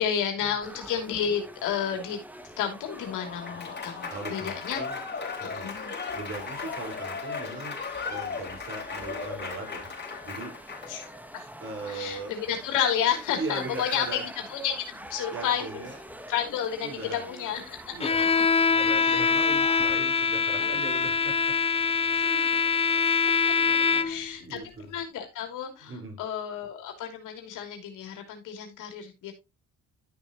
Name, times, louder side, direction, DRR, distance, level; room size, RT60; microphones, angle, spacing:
voice 1, 0.0-2.2 2.6-4.8 5.4-5.9 10.9-11.1 11.3-11.5 11.9-14.2 14.5-15.8 16.3-17.8 18.3-18.4 19.0-19.3 20.6-20.7 22.1-22.3 23.4-24.6 24.9-25.9 26.2-29.3, left 8 dB, 90° left, 4 dB, 3.1 m, -31 dB
sound 1, 0.6-20.0, right 1 dB, 5° right, 1.3 m, -46 dB
Applause / Crowd, 2.9-11.1, left 5 dB, 35° left, 4.0 m, -36 dB
voice 2, 4.1-5.0 5.4-5.7 6.1-7.8 8.1-9.9 10.2-10.7 11.6-12.3 13.4-14.2 15.3-16.0 16.8-17.5 17.9-21.5 22.2-22.6 23.6-25.0 25.8-26.2, right 3 dB, 45° right, 2 dB, 4.6 m, -39 dB
Bowed string instrument, 18.0-24.3, left 5 dB, 20° left, 0.5 m, -24 dB
12.5 x 6.2 x 3.0 m, 0.24 s
cardioid pair, 90°, 30 cm